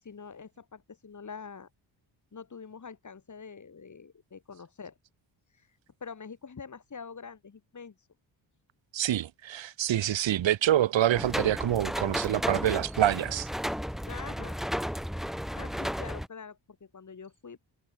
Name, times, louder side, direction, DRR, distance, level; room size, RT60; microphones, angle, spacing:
voice 1, 0.0-1.7 2.3-5.0 5.5-8.1 14.0-14.6 15.5-17.6, left 5 dB, 40° left, 4.4 m, -45 dB
voice 2, 8.9-13.5, right 12 dB, 75° right, 1.9 m, -26 dB
sound 1, 11.2-16.3, equal, ahead, 4.6 m, -33 dB
cardioid pair, 80°, 46 cm